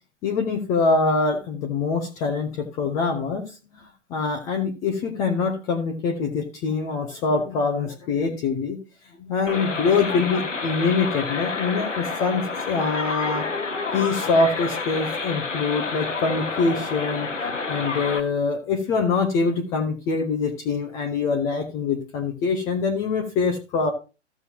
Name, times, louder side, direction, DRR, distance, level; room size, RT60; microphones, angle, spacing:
voice 1, 0.2-3.8 4.1-8.8 9.2-13.5 13.9-23.9, left 4 dB, 10° left, 5 dB, 0.4 m, -24 dB
sound 1, 9.5-18.2, left 4 dB, 85° left, 1.3 m, -29 dB
14.0 x 6.6 x 2.8 m, 0.30 s
figure-of-eight pair, 120°, 36 cm